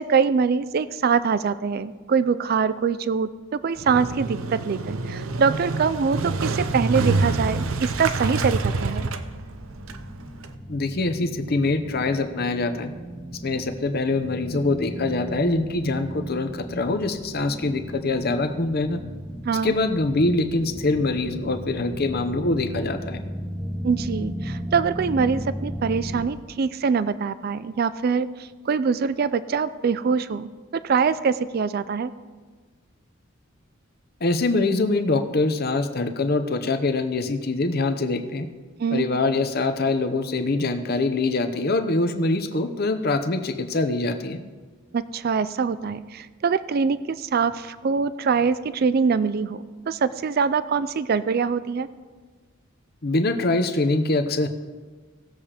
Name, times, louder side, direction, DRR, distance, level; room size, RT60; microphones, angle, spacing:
voice 1, 0.0-9.1 19.4-19.7 23.8-28.3 28.7-32.1 38.8-39.1 44.9-51.9, right 5 dB, 50° right, 15 dB, 0.4 m, -24 dB
Motorcycle, 3.8-10.5, right 3 dB, 80° right, 0.7 m, -27 dB
sound 1, 8.9-26.3, equal, 5° right, 0.9 m, -36 dB
voice 2, 10.7-12.9 13.4-19.0 19.6-23.2 34.2-38.5 38.9-44.4 53.0-54.5, left 2 dB, 50° left, 8 dB, 0.7 m, -24 dB
18.0 x 7.2 x 3.4 m, 1.4 s
head